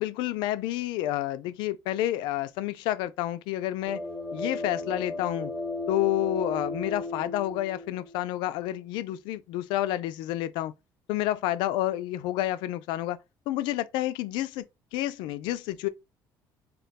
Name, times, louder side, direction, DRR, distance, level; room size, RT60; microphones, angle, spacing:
voice 1, 0.0-4.0 4.3-5.5 5.9-10.7 11.1-13.2 13.5-14.6 14.9-15.9, left 14 dB, 90° left, 0.3 m, -29 dB
sound 1, 3.9-8.3, left 2 dB, 5° left, 0.9 m, -35 dB
2.3 x 2.2 x 3.9 m
cardioid pair, 135°, 8 cm